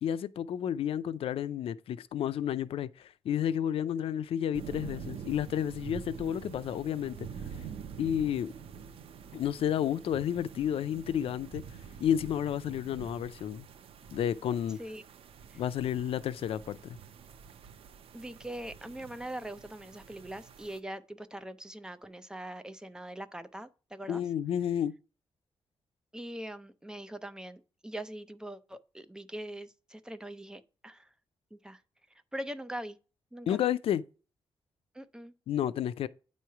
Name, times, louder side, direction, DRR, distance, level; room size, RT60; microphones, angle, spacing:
voice 1, 0.0-7.7 8.0-8.5 9.3-11.6 12.0-13.7 14.1-14.8 15.6-17.0 24.1-24.9 33.5-34.0 35.5-36.1, left 10 dB, 85° left, 0.4 m, -31 dB
sound 1, 4.5-20.8, right 7 dB, 85° right, 0.6 m, -47 dB
voice 2, 18.1-24.2 26.1-31.1 31.5-31.8 32.3-33.0 33.3-33.6 34.9-35.3, right 1 dB, 5° right, 0.5 m, -42 dB
9.1 x 3.1 x 5.7 m
wide cardioid pair, 140°, 9 cm